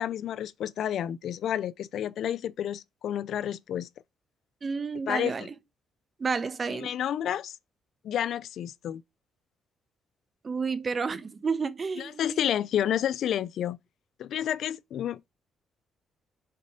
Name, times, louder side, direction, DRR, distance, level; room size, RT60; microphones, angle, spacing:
voice 1, 0.0-3.9 5.1-5.3 6.8-7.6 8.0-9.0 12.0-13.8 14.2-15.3, left 10 dB, 70° left, 0.4 m, -30 dB
voice 2, 4.6-5.6 6.2-7.0 10.4-12.4, right 5 dB, 35° right, 1.1 m, -31 dB
6.8 x 4.1 x 4.9 m
cardioid pair, 90°, 0 cm